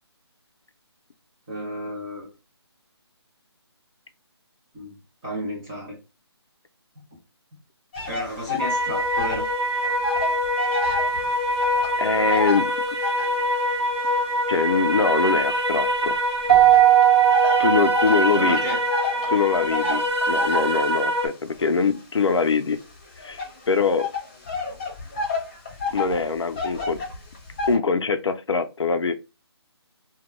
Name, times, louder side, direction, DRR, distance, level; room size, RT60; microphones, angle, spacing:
voice 1, 1.5-2.3 4.7-5.0 5.2-6.0 7.0-7.1 8.1-9.4 18.3-18.8, equal, 5° right, 0.3 m, -32 dB
sound 1, 7.9-9.5 9.8-13.4 14.0-16.1 16.7-27.8, left 4 dB, 20° left, 0.7 m, -31 dB
sound 2, 8.6-21.3, equal, 85° right, 1.0 m, -24 dB
voice 2, 12.0-12.7 14.5-16.1 17.6-18.6 19.3-22.8 23.2-24.1 25.9-27.0 27.7-29.2, left 5 dB, 85° left, 0.5 m, -23 dB
Keyboard (musical), 16.5-18.8, right 14 dB, 60° right, 0.5 m, -18 dB
2.2 x 2.1 x 3.0 m
hypercardioid pair, 165°, 14 cm